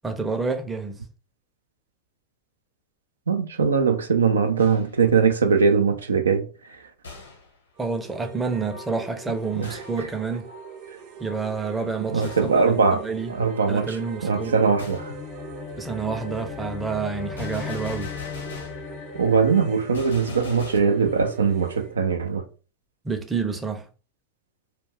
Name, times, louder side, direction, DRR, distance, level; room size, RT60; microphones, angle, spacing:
voice 1, 0.0-1.0 7.8-10.5 11.2-13.3 13.7-14.6 15.8-18.1 23.0-23.9, right 4 dB, 15° right, 0.5 m, -29 dB
voice 2, 3.3-6.5 9.5-10.1 12.1-13.0 13.3-14.0 14.2-15.1 19.1-22.4, right 5 dB, 85° right, 0.4 m, -21 dB
Gunshot gunfire, 4.6-5.1 7.0-7.6 9.6-10.1 12.2-12.6 14.8-15.1 17.4-18.9 19.9-20.8, left 3 dB, 90° left, 0.9 m, -41 dB
sound 1, 7.8-21.9, right 5 dB, 55° right, 0.7 m, -42 dB
sound 2, 14.6-21.2, left 10 dB, 45° left, 0.4 m, -38 dB
2.3 x 2.2 x 3.3 m
hypercardioid pair, 95°, 0 cm